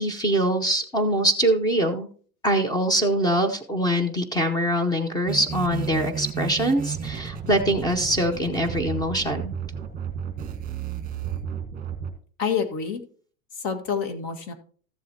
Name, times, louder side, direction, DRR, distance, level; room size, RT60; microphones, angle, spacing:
voice 1, 0.0-2.1 2.4-9.5, right 1 dB, 10° left, 8 dB, 0.7 m, -23 dB
sound 1, 5.3-12.1, right 8 dB, 20° right, 1.6 m, -32 dB
voice 2, 12.4-13.0 13.5-14.5, left 6 dB, 50° left, 7 dB, 1.8 m, -27 dB
14.0 x 7.6 x 2.8 m, 0.43 s
supercardioid pair, 145°, 42 cm